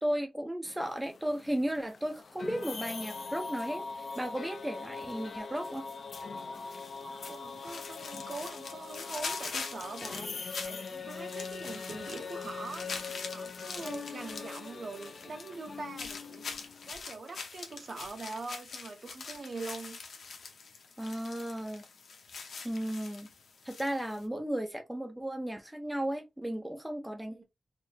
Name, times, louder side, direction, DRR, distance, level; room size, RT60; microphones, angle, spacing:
voice 1, 0.0-5.8 21.0-21.9 22.6-23.3 23.6-27.4, right 1 dB, 5° right, 0.5 m, -35 dB
sound 1, 0.6-16.9, left 4 dB, 55° left, 0.4 m, -42 dB
sound 2, 6.6-24.2, left 4 dB, 85° left, 0.8 m, -44 dB
voice 2, 7.0-16.5 16.9-20.0 27.3-27.4, right 3 dB, 50° right, 0.8 m, -43 dB
4.2 x 2.0 x 3.3 m
wide cardioid pair, 145°, 0 cm